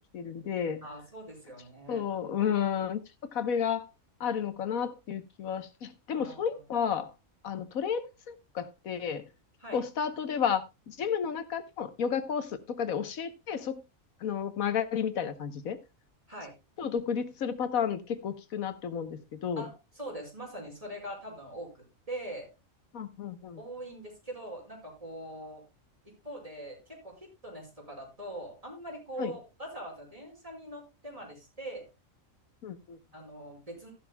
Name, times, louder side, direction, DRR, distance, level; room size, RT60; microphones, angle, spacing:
voice 1, 0.1-0.8 1.9-3.0 3.3-3.9 4.2-7.1 7.4-9.3 9.7-10.6 10.9-13.8 14.2-15.8 16.8-19.6 22.9-23.6 29.2-29.3 32.6-33.0, left 7 dB, 90° left, 1.5 m, -32 dB
voice 2, 0.8-2.0 6.1-6.4 9.6-9.8 16.3-16.5 19.6-22.5 23.6-25.6 26.0-31.9 33.1-33.9, right 1 dB, 25° right, 5.6 m, -42 dB
14.5 x 11.5 x 2.3 m
omnidirectional pair, 1.4 m